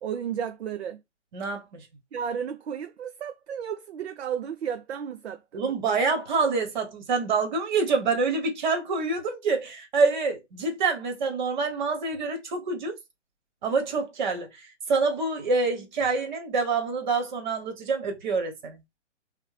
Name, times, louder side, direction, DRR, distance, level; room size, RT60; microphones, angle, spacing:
voice 1, 0.0-1.0 2.1-5.7, right 8 dB, 60° right, 0.5 m, -33 dB
voice 2, 1.3-1.8 5.5-12.9 13.6-14.5 14.9-18.8, right 4 dB, 40° right, 1.0 m, -26 dB
3.4 x 2.2 x 3.1 m
figure-of-eight pair, 135°, 37 cm